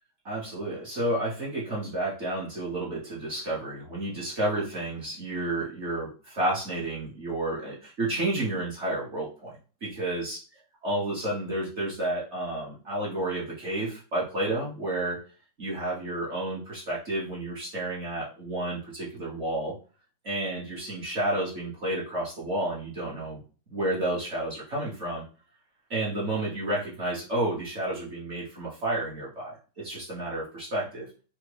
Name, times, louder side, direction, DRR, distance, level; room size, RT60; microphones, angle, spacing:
voice 1, 0.2-9.5 9.8-10.4 10.8-15.2 15.6-19.7 20.2-23.4 23.7-25.2 25.9-31.1, right 1 dB, 50° right, -6 dB, 1.0 m, -31 dB
3.4 x 2.0 x 3.2 m, 0.37 s
omnidirectional pair, 2.0 m